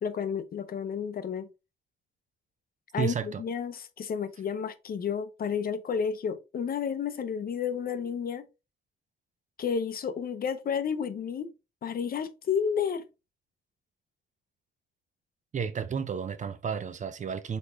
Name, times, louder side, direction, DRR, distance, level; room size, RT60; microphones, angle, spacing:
voice 1, 0.0-1.5 2.9-8.5 9.6-11.5 11.8-13.1, left 7 dB, 50° left, 0.6 m, -31 dB
voice 2, 3.0-3.4 15.5-17.6, right 7 dB, 40° right, 0.6 m, -32 dB
4.1 x 3.5 x 3.0 m
cardioid pair, 90°, 20 cm